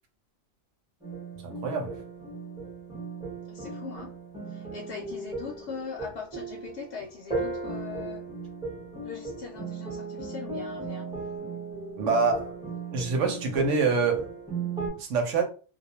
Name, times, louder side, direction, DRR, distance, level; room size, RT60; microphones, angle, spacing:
sound 1, 1.0-14.9, right 3 dB, 5° right, 0.7 m, -37 dB
voice 1, 1.4-2.0 12.0-12.6 12.9-14.3 15.0-15.4, right 4 dB, 80° right, 1.0 m, -26 dB
voice 2, 3.5-4.1 4.5-8.2 9.0-11.1, left 6 dB, 70° left, 0.8 m, -40 dB
2.3 x 2.2 x 2.8 m
omnidirectional pair, 1.2 m